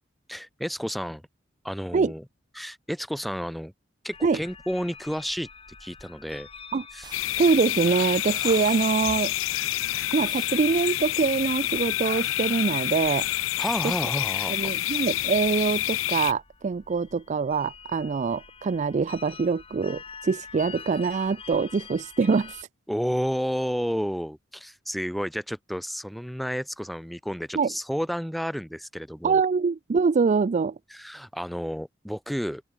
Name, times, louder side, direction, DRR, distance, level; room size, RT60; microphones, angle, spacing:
voice 1, 0.3-1.2 1.6-2.2 2.5-3.7 4.0-5.5 5.8-6.5 6.9-7.1 13.6-14.7 22.9-29.4 30.9-32.6, equal, ahead, 1.0 m, -31 dB
sound 1, 4.1-22.6, left 5 dB, 30° left, 2.0 m, -48 dB
sound 2, 7.0-12.1, right 4 dB, 25° right, 2.4 m, -48 dB
sound 3, 7.1-16.3, left 15 dB, 90° left, 0.4 m, -28 dB
voice 2, 7.4-9.3 10.1-13.3 14.5-22.7 27.5-27.7 29.2-30.7, right 5 dB, 40° right, 0.4 m, -24 dB
open air
head